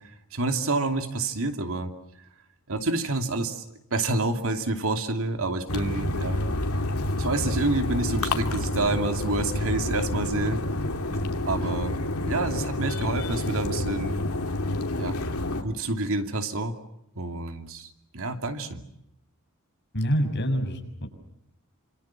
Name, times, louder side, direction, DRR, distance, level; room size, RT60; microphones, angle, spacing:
voice 1, 0.0-1.9 2.7-3.6 3.9-6.4 7.2-10.6 11.5-12.0 12.2-14.2 15.0-15.2 15.6-16.8 17.2-18.8, right 2 dB, 70° right, 6 dB, 2.8 m, -28 dB
sound 1, 5.7-15.6, left 1 dB, 90° left, 3.0 m, -28 dB
voice 2, 19.9-21.1, equal, 55° left, 4 dB, 6.6 m, -26 dB
28.5 x 27.0 x 7.4 m, 0.79 s
head